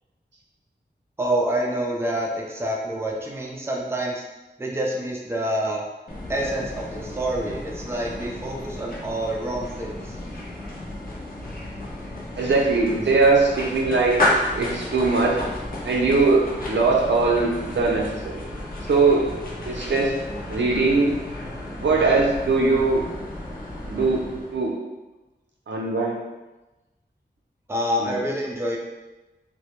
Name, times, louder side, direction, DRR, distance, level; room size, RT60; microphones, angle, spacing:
voice 1, 1.2-4.2 4.6-5.8 6.3-10.2 27.7-28.8, right 1 dB, 15° right, -2 dB, 0.4 m, -27 dB
sound 1, 6.1-24.7, left 1 dB, 55° left, 0.5 m, -32 dB
voice 2, 12.4-15.4 15.8-18.1 18.9-19.2 19.7-20.1 20.5-21.2 21.8-23.0 23.9-24.2 24.5-24.7 25.7-26.1 28.0-28.1, right 3 dB, 85° right, -2 dB, 0.5 m, -20 dB
2.2 x 2.0 x 2.9 m, 1.1 s
wide cardioid pair, 70°, 18 cm